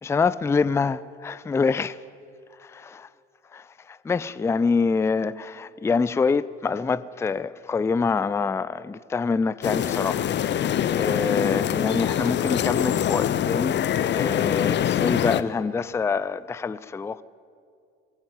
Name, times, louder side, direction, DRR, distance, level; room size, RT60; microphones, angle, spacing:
voice 1, 0.0-2.0 2.6-3.1 3.5-17.2, left 4 dB, 10° left, 0.4 m, -26 dB
sound 1, 9.6-15.4, left 10 dB, 35° left, 0.8 m, -24 dB
21.0 x 14.5 x 10.0 m
figure-of-eight pair, 55°, 33 cm